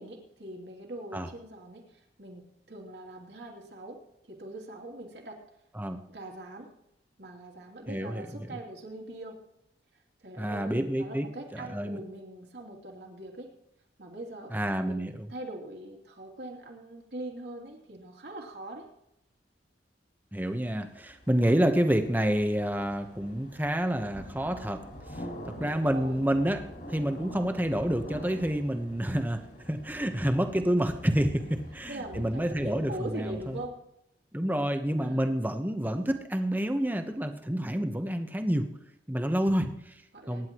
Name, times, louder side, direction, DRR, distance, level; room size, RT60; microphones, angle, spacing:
voice 1, 0.0-5.4 6.1-6.7 7.2-9.4 10.2-13.5 14.0-18.9 25.7-26.2 30.1-30.2 31.4-31.5 31.9-33.8 35.0-35.2 40.1-40.5, right 1 dB, 65° right, 0 dB, 3.0 m, -42 dB
voice 2, 7.9-8.6 10.4-11.3 11.5-12.0 14.5-15.1 20.3-24.8 25.1-25.2 25.6-26.6 26.9-31.4 31.7-33.6 34.3-38.6 39.1-39.9 40.3-40.5, equal, 10° right, 6 dB, 1.1 m, -28 dB
sound 1, 20.4-33.7, equal, 55° left, 5.2 m, -46 dB
24.0 x 10.5 x 3.1 m, 0.79 s
head